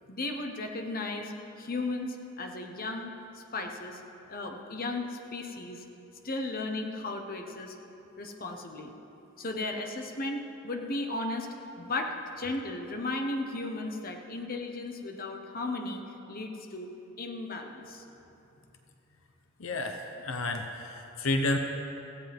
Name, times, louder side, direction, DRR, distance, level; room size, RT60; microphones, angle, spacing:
voice 1, 0.1-4.0 4.3-5.8 6.2-7.7 8.2-8.9 9.4-11.5 11.8-16.0 16.3-16.9 17.2-18.0, left 2 dB, 45° left, 3 dB, 1.1 m, -35 dB
voice 2, 19.6-21.6, left 2 dB, 75° left, 4 dB, 0.9 m, -31 dB
17.0 x 16.0 x 3.6 m, 3.0 s
head